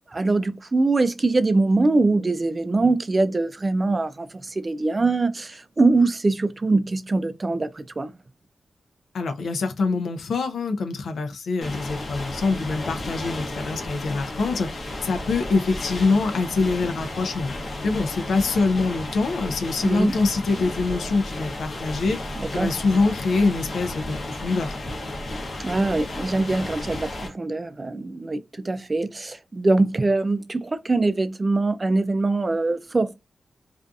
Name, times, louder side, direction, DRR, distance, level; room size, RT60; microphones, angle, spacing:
voice 1, 0.1-8.2 19.8-20.1 22.4-22.7 25.6-33.1, right 3 dB, 30° right, 0.3 m, -23 dB
voice 2, 9.1-17.5 17.8-24.8, left 3 dB, 90° left, 0.4 m, -24 dB
sound 1, 11.6-27.3, left 1 dB, 50° left, 0.7 m, -33 dB
2.6 x 2.4 x 2.3 m
wide cardioid pair, 100°, 0 cm